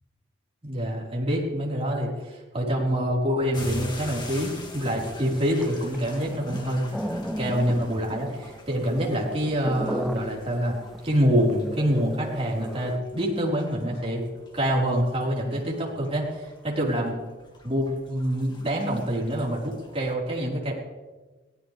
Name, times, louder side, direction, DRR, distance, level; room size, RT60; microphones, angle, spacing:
voice 1, 0.6-6.8 7.4-10.8 11.0-14.2 14.5-17.2 17.6-20.7, equal, 30° right, -3 dB, 4.4 m, -26 dB
sound 1, 3.5-20.1, left 1 dB, 25° left, 2.3 m, -44 dB
sound 2, 4.4-13.0, equal, ahead, 0.8 m, -35 dB
22.5 x 17.5 x 3.4 m, 1.2 s
head